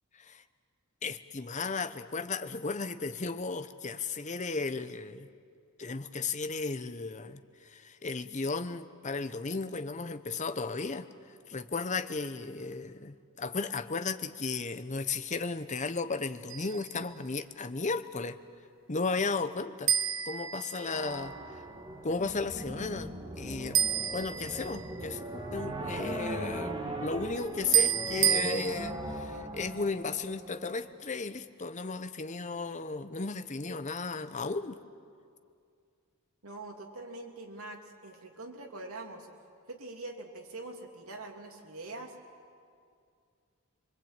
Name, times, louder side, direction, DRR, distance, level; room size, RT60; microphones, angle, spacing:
voice 1, 0.1-0.4 1.0-5.3 5.8-11.1 11.5-18.4 18.9-19.9 20.3-21.6 22.0-34.8, left 4 dB, 35° left, 11 dB, 0.9 m, -35 dB
sound 1, 16.5-16.9 19.9-21.2 23.7-25.0 27.7-28.5, right 9 dB, 60° right, 1.3 m, -28 dB
sound 2, 20.9-31.0, right 1 dB, 20° right, 2.5 m, -39 dB
voice 2, 36.4-39.3 39.7-42.1, right 2 dB, 80° right, 2 dB, 3.0 m, -44 dB
24.5 x 24.0 x 9.0 m, 2.3 s
head